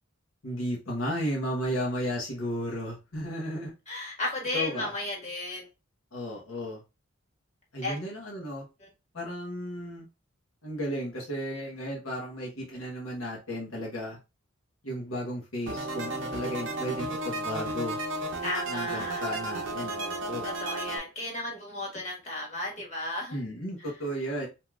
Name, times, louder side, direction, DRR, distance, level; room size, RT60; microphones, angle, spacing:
voice 1, 0.4-3.7 4.5-4.9 6.1-6.8 7.7-8.7 9.1-10.1 10.6-14.2 14.8-18.0 18.7-20.5 23.3-24.5, equal, 80° left, -3 dB, 1.0 m, -34 dB
voice 2, 3.9-5.7 7.8-8.0 18.4-19.2 20.4-23.4, left 2 dB, 35° left, -2 dB, 1.4 m, -34 dB
sound 1, 15.7-21.0, right 2 dB, 60° right, 0.6 m, -33 dB
3.3 x 2.8 x 2.3 m, 0.27 s
head